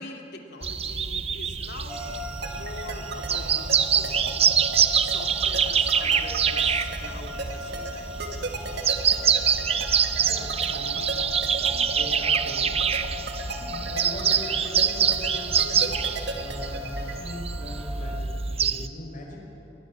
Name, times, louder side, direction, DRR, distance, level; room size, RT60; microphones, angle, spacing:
voice 1, 0.0-8.2, left 2 dB, 60° left, 3 dB, 2.7 m, -44 dB
sound 1, 0.6-18.9, right 7 dB, 35° right, 0.7 m, -25 dB
sound 2, 1.9-18.2, left 1 dB, 5° right, 2.5 m, -40 dB
sound 3, 2.4-17.1, right 3 dB, 65° right, 2.0 m, -35 dB
voice 2, 10.2-11.1 11.4-12.9 13.4-16.0 16.3-19.7, left 1 dB, 45° left, -1 dB, 5.3 m, -41 dB
22.5 x 20.0 x 7.5 m, 2.9 s
head